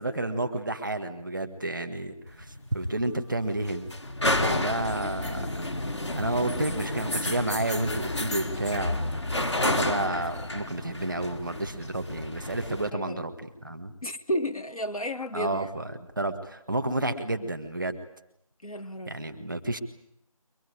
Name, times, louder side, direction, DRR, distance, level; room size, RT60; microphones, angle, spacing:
voice 1, 0.0-3.9 4.4-5.5 6.1-9.0 9.6-13.9 15.3-18.0 19.1-19.8, right 2 dB, ahead, 7 dB, 1.2 m, -30 dB
sound 1, 2.3-12.9, left 1 dB, 50° left, 2.6 m, -31 dB
voice 2, 14.0-15.7 18.6-19.2, equal, 75° left, 10 dB, 2.0 m, -32 dB
24.0 x 20.0 x 9.9 m, 0.74 s
figure-of-eight pair, 175°, 19 cm